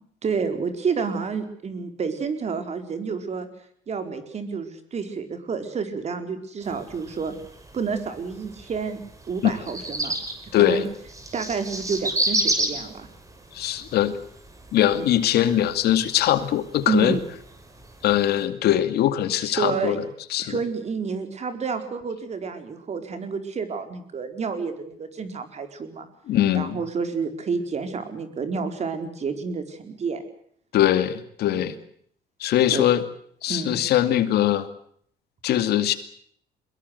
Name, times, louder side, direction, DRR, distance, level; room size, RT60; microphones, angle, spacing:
voice 1, 0.2-3.5 3.9-7.3 7.7-9.0 9.3-10.1 10.6-10.9 11.3-13.1 14.9-15.0 16.9-17.2 19.5-20.0 20.4-26.0 26.5-30.2 31.5-31.7 32.7-32.8 33.5-33.8, right 5 dB, 40° right, 8 dB, 4.7 m, -29 dB
sound 1, 6.6-18.5, right 2 dB, 20° right, 5.7 m, -33 dB
voice 2, 10.5-10.8 13.5-14.2 14.7-17.2 18.0-20.0 20.3-20.6 26.3-26.8 30.7-31.7 32.4-33.0 33.4-34.7 35.4-35.9, left 12 dB, 70° left, 11 dB, 2.5 m, -21 dB
23.0 x 21.5 x 8.2 m, 0.63 s
cardioid pair, 110°, 17 cm